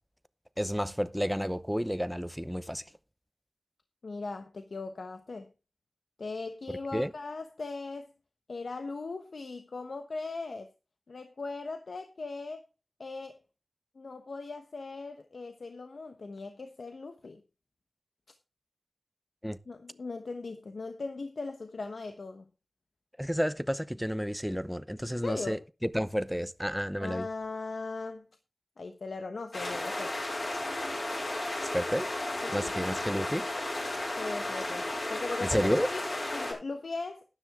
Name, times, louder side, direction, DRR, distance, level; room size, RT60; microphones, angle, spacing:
voice 1, 0.6-2.8 6.9-7.1 19.4-19.6 23.2-27.3 31.6-32.1 32.5-33.5 35.4-35.9, equal, ahead, 0.8 m, -31 dB
voice 2, 4.0-5.5 6.2-8.1 8.5-10.7 11.1-12.6 13.0-13.4 13.9-17.4 19.7-22.4 25.1-25.6 27.0-28.3 28.8-30.2 32.4-32.7 34.1-35.6 35.9-36.0 36.3-37.2, left 3 dB, 85° left, 1.1 m, -39 dB
sound 1, 29.5-36.5, left 1 dB, 60° left, 5.9 m, -34 dB
12.5 x 10.0 x 3.6 m
wide cardioid pair, 65°, 0 cm